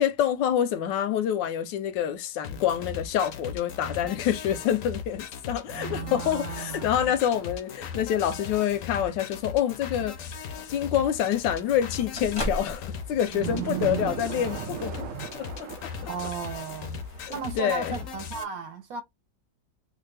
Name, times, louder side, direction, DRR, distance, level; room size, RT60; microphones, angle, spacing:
voice 1, 0.0-10.2 10.7-15.1 15.3-15.9 17.5-18.0, left 10 dB, 80° left, 1.3 m, -27 dB
sound 1, 2.4-18.4, left 6 dB, 65° left, 0.9 m, -38 dB
voice 2, 5.7-7.1 13.3-14.1 16.1-17.0 17.3-19.0, right 7 dB, 60° right, 1.1 m, -35 dB
sound 2, 5.7-8.0 8.4-8.5 11.1-17.4 17.6-17.7, right 8 dB, 85° right, 0.7 m, -40 dB
sound 3, 10.3-17.6, equal, 25° left, 0.7 m, -41 dB
3.2 x 2.4 x 3.2 m
omnidirectional pair, 2.0 m